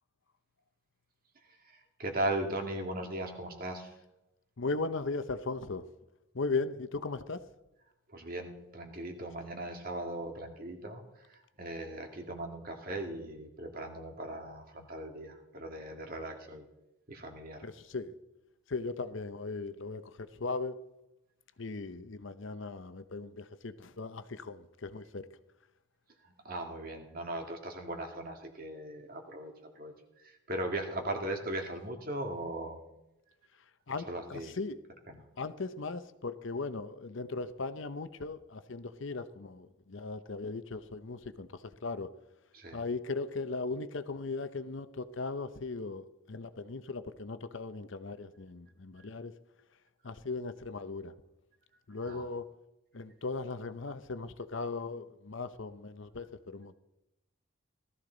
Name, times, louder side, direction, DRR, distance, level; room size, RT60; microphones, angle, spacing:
voice 1, 1.7-3.9 8.1-11.0 11.6-16.7 17.1-17.7 26.2-29.9 30.2-32.8 33.9-34.6 35.1-35.2 42.5-42.8 52.1-52.3, right 1 dB, 45° right, 2.0 m, -38 dB
voice 2, 4.6-5.8 6.3-7.4 17.6-18.1 18.7-20.8 21.6-25.3 33.9-34.8 35.4-41.5 41.8-42.1 42.7-49.3 50.0-51.1 51.9-52.5 52.9-56.7, left 3 dB, 65° left, 0.7 m, -38 dB
18.0 x 13.5 x 3.9 m
head